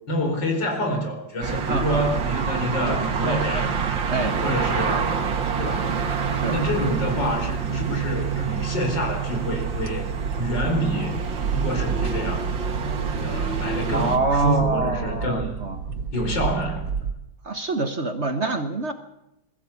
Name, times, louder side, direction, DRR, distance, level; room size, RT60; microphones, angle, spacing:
voice 1, 0.1-3.7 4.4-5.2 5.6-6.0 6.5-10.1 10.4-11.2 11.5-12.5 13.2-15.6 16.1-16.9, equal, 75° left, 2 dB, 5.0 m, -27 dB
sound 1, 1.4-14.2, right 6 dB, 85° right, 2.6 m, -26 dB
voice 2, 1.7-2.2 3.2-3.7 4.1-4.4 6.3-6.6 13.9-15.8 17.4-18.9, right 3 dB, 40° right, 8 dB, 1.4 m, -26 dB
sound 2, 6.8-17.1, right 6 dB, 70° right, 1.9 m, -32 dB
21.5 x 15.0 x 8.3 m, 0.89 s
omnidirectional pair, 2.0 m